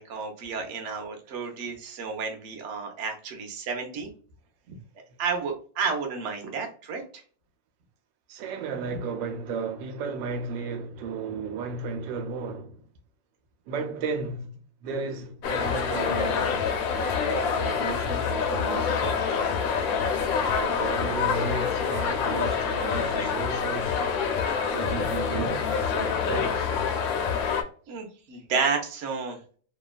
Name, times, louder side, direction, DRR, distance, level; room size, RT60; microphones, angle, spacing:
voice 1, 0.0-4.1 5.2-7.0 27.9-29.4, right 5 dB, 60° right, 0.8 m, -31 dB
voice 2, 8.3-12.8 13.7-16.6 16.9-19.4 20.5-24.0 24.7-26.7, right 4 dB, 90° right, 1.3 m, -34 dB
sound 1, 15.4-27.6, left 6 dB, 75° left, 0.8 m, -26 dB
2.9 x 2.2 x 2.3 m
omnidirectional pair, 1.9 m